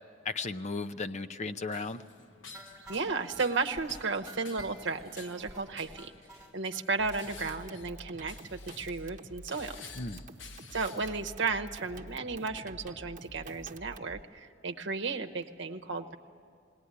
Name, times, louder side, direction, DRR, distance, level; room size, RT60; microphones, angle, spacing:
voice 1, 0.2-2.0 9.9-10.2, left 3 dB, 35° left, 8 dB, 0.6 m, -35 dB
sound 1, 1.5-11.2, left 5 dB, 70° left, 1.0 m, -53 dB
sound 2, 2.5-6.8 7.3-7.4 7.7-7.8 8.0-8.1 8.5-8.6, right 1 dB, 5° right, 3.3 m, -51 dB
voice 2, 2.9-6.1 6.5-9.8 10.7-16.2, right 4 dB, 65° right, 5 dB, 0.9 m, -34 dB
sound 3, 7.0-14.2, right 2 dB, 40° right, 0.9 m, -48 dB
19.5 x 18.5 x 9.7 m, 2.3 s
head